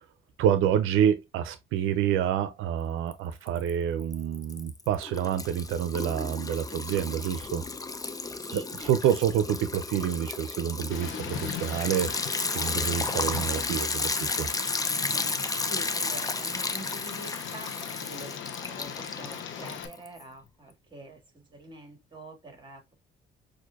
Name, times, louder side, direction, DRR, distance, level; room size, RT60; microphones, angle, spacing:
voice 1, 0.4-7.6 8.9-12.1 12.5-14.5, right 9 dB, 90° right, 0.5 m, -27 dB
Liquid, 3.1-3.7 4.0-20.2, left 3 dB, 20° left, 0.5 m, -33 dB
voice 2, 8.1-8.9 15.6-22.9, right 1 dB, 25° right, 2.0 m, -46 dB
Tick, 10.9-19.9, left 8 dB, 75° left, 0.8 m, -39 dB
6.1 x 2.6 x 2.3 m
cardioid pair, 90°, 20 cm